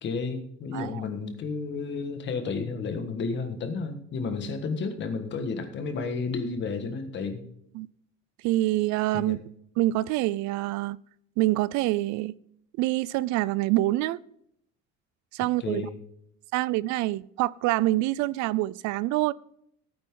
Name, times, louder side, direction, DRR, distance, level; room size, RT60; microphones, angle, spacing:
voice 1, 0.0-7.4 9.1-9.4 15.6-16.0, left 4 dB, 40° left, 1.6 m, -32 dB
voice 2, 8.4-9.4 9.8-11.0 11.4-12.4 12.8-14.2 15.3-15.8 16.5-19.3, right 17 dB, 70° right, 0.4 m, -26 dB
16.0 x 9.4 x 3.8 m
cardioid pair, 165°, 30 cm